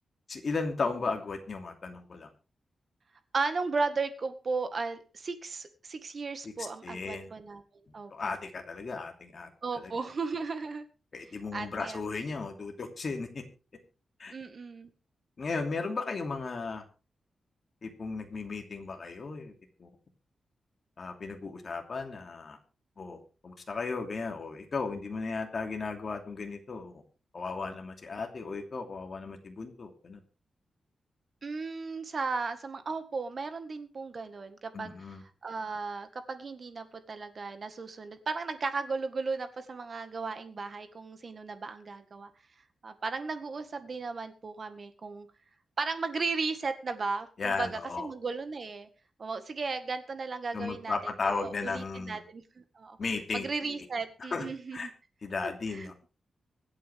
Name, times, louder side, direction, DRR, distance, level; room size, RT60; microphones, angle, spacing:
voice 1, 0.3-2.3 6.4-6.5 6.8-7.3 7.9-9.5 9.8-9.9 11.1-13.4 14.2-14.3 15.4-16.8 17.8-19.5 19.8-19.9 21.0-22.6 23.0-23.2 23.4-27.0 27.3-30.2 34.7-35.2 47.4-48.1 50.5-52.2 53.0-53.8 54.2-54.5 54.7-54.9 55.2-55.9, left 4 dB, 40° left, 4 dB, 2.9 m, -35 dB
voice 2, 3.3-8.1 9.6-10.9 11.5-12.0 14.3-14.9 31.4-35.2 35.4-42.3 42.8-45.3 45.8-48.9 49.2-53.0 53.3-54.9 55.4-55.9, right 4 dB, 40° right, 9 dB, 1.8 m, -35 dB
24.5 x 8.6 x 3.6 m, 0.33 s
wide cardioid pair, 150°, 0 cm